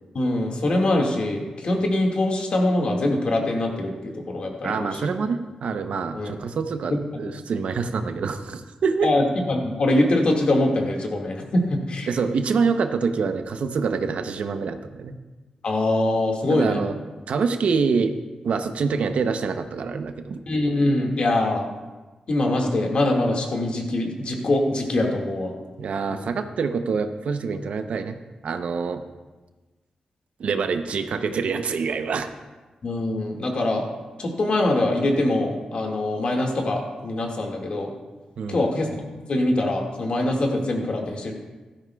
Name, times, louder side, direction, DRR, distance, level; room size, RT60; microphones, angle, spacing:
voice 1, 0.1-5.0 6.1-6.3 6.9-7.0 9.0-12.1 15.6-16.8 20.5-21.7 22.3-25.5 26.1-26.3 32.8-33.8 34.2-37.9 38.5-41.3, left 1 dB, 55° left, 1 dB, 1.9 m, -23 dB
voice 2, 4.6-9.1 12.1-15.2 16.5-17.0 17.3-18.2 18.4-20.4 25.8-28.2 28.4-29.0 30.4-32.3 38.4-38.6, right 5 dB, 75° right, 8 dB, 0.7 m, -26 dB
15.0 x 13.0 x 2.3 m, 1.2 s
wide cardioid pair, 105°, 2 cm